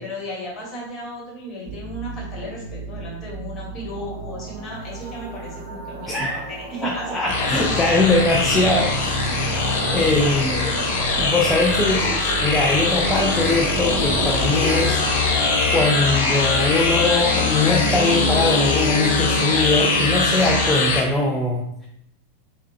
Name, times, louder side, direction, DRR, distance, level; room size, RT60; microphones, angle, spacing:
voice 1, 0.0-8.1 9.3-11.3, equal, 30° left, -3 dB, 1.2 m, -35 dB
sound 1, 1.7-20.1, right 2 dB, 25° right, 1.3 m, -35 dB
voice 2, 6.8-9.2 9.9-10.6 11.2-15.0 15.7-21.9, left 2 dB, 10° left, -1 dB, 0.3 m, -21 dB
sound 2, 7.3-21.0, left 3 dB, 55° left, 0.7 m, -21 dB
3.2 x 2.1 x 3.2 m, 0.77 s
figure-of-eight pair, 90°, 0 cm